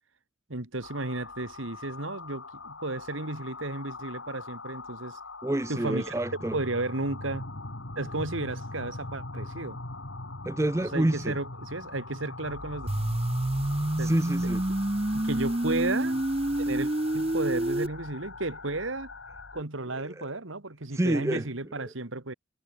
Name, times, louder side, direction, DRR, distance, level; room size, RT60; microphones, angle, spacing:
voice 1, 0.5-5.2 5.7-6.1 6.5-7.4 8.0-9.8 10.9-12.9 14.0-14.1 15.1-16.2 16.7-19.1 19.5-22.3, right 2 dB, 80° right, 2.3 m, -33 dB
sound 1, 0.8-19.6, left 2 dB, 75° left, 3.0 m, -41 dB
voice 2, 5.4-6.6 10.4-11.4 14.0-14.6 20.0-20.3 20.9-21.5, right 1 dB, 15° right, 0.5 m, -28 dB
sound 2, 12.9-17.9, right 1 dB, 30° right, 0.9 m, -28 dB
head